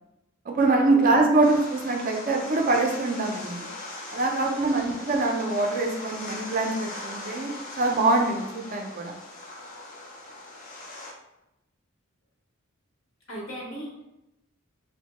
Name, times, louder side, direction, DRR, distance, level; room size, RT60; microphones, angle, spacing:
voice 1, 0.5-3.7 4.1-7.5 7.8-9.1, right 2 dB, 40° right, 1 dB, 0.4 m, -24 dB
sound 1, 1.4-11.1, left 2 dB, 40° left, 0.5 m, -40 dB
voice 2, 4.4-5.0 13.3-14.0, right 1 dB, 65° left, -3 dB, 0.9 m, -38 dB
2.9 x 2.1 x 2.8 m, 0.89 s
head